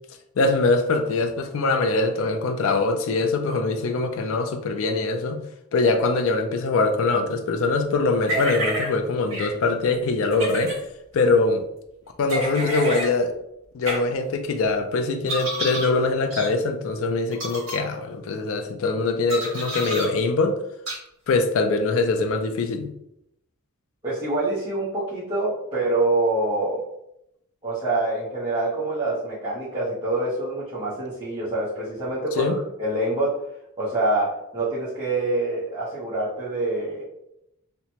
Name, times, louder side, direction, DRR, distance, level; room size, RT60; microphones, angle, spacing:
voice 1, 0.4-5.4 5.7-10.8 11.1-11.6 12.2-13.3 13.7-20.6 21.3-22.9 32.4-32.6, left 3 dB, 65° left, 5 dB, 0.4 m, -23 dB
sound 1, 8.3-8.9 9.3-9.5 10.3-10.8 12.3-13.1 13.9-14.0 15.3-15.9 16.3-16.5 17.3-17.8 19.3-20.1 20.9-21.0, right 1 dB, 60° right, 1.3 m, -29 dB
voice 2, 24.0-26.8 27.6-33.4 33.8-37.0, right 2 dB, 20° right, -12 dB, 0.8 m, -26 dB
2.9 x 2.1 x 2.8 m, 0.81 s
head